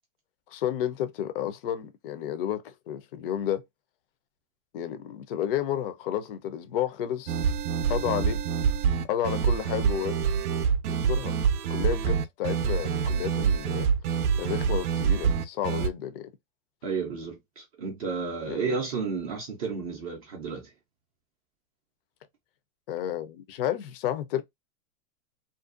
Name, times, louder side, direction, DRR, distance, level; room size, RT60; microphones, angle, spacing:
voice 1, 0.5-3.6 4.7-7.4 7.9-8.4 9.1-10.2 10.9-11.3 11.7-13.9 14.4-16.3 18.5-18.8 22.9-24.4, left 10 dB, 40° left, 0.4 m, -31 dB
sound 1, 7.3-15.9, right 7 dB, 85° right, 0.5 m, -26 dB
voice 2, 16.8-20.7, right 5 dB, 25° right, 0.4 m, -32 dB
2.5 x 2.2 x 2.4 m
hypercardioid pair, 140°, 44 cm